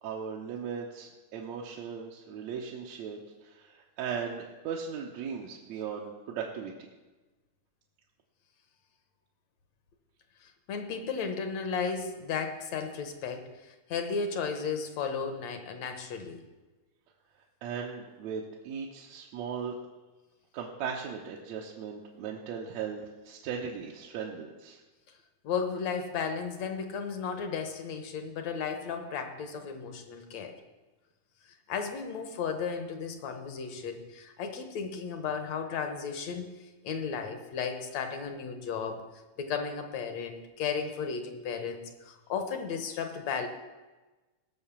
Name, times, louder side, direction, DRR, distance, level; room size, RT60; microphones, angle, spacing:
voice 1, 0.0-6.7 17.6-19.7 20.5-24.8, right 7 dB, 70° right, -2 dB, 2.2 m, -38 dB
voice 2, 10.7-13.5 13.9-16.4 25.4-30.6 31.7-36.5 36.8-39.0 39.4-43.5, left 6 dB, 65° left, 7 dB, 2.2 m, -34 dB
18.0 x 6.4 x 7.3 m, 1.2 s
omnidirectional pair, 3.5 m